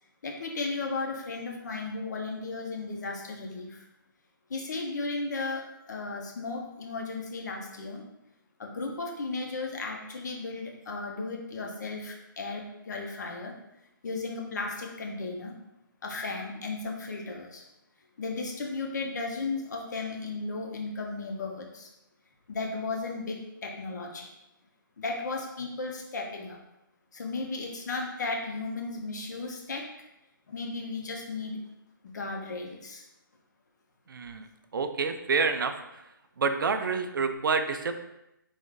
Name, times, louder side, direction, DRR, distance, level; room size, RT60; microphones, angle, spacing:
voice 1, 0.2-3.8 4.5-8.0 8.6-13.5 14.0-15.5 16.0-17.6 18.2-21.9 22.5-24.3 25.0-26.6 27.1-29.9 30.5-31.6 32.0-33.0, left 3 dB, 55° left, 1 dB, 0.8 m, -35 dB
voice 2, 34.1-34.5 34.7-35.7 36.4-38.0, right 4 dB, 75° right, 8 dB, 0.4 m, -28 dB
3.5 x 2.6 x 3.7 m, 0.89 s
hypercardioid pair, 170°, 11 cm